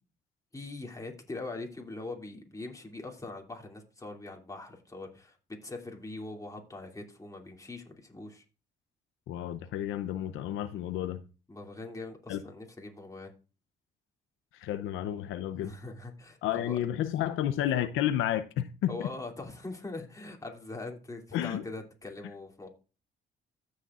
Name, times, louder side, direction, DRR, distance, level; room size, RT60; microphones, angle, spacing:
voice 1, 0.5-5.4 5.6-8.4 11.5-13.3 15.5-16.8 18.9-22.7, left 2 dB, 15° left, 2.6 m, -42 dB
voice 2, 9.3-11.2 12.3-12.4 14.6-15.7 16.4-19.0 21.3-21.6, left 11 dB, 90° left, 0.6 m, -31 dB
14.5 x 6.6 x 2.4 m
cardioid pair, 90°, 20 cm